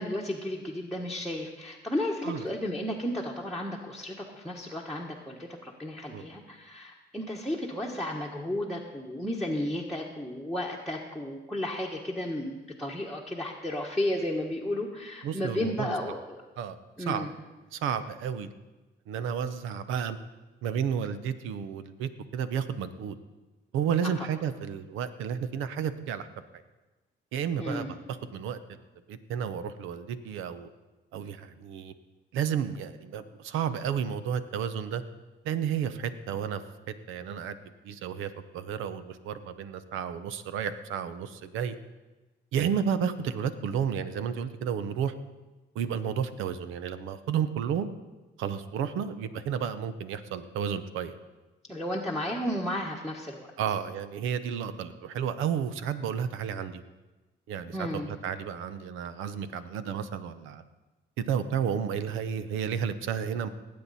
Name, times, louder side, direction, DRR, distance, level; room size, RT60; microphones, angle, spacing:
voice 1, 0.0-16.4 17.0-17.3 27.5-27.9 51.7-53.5 57.7-58.1, left 1 dB, ahead, -4 dB, 1.3 m, -33 dB
voice 2, 15.2-15.9 16.6-16.8 17.1-17.3 17.7-18.5 19.1-20.2 20.6-23.2 23.7-26.3 27.3-28.8 29.1-30.7 31.1-31.9 32.3-35.0 35.4-36.6 36.9-37.6 37.8-41.7 42.5-45.1 45.7-47.9 48.4-51.1 53.6-56.8 57.5-60.6 61.2-63.5, right 8 dB, 90° right, 12 dB, 0.8 m, -32 dB
19.5 x 8.6 x 4.2 m, 1.1 s
cardioid pair, 90°, 20 cm